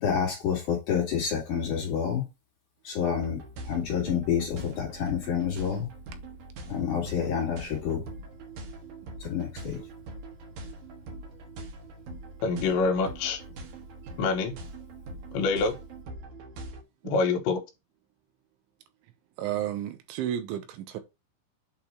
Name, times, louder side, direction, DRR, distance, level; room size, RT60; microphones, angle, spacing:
voice 1, 0.0-2.2 2.8-3.4 3.7-5.9 6.7-8.0 9.2-9.8, left 7 dB, 50° left, 2.8 m, -28 dB
sound 1, 3.1-16.8, right 2 dB, 70° right, 1.9 m, -43 dB
voice 2, 12.4-13.4 14.2-14.5 15.3-15.7 17.0-17.6, left 4 dB, 75° left, 3.3 m, -25 dB
voice 3, 19.4-21.0, right 11 dB, 85° right, 3.2 m, -32 dB
8.3 x 2.9 x 4.5 m
omnidirectional pair, 5.5 m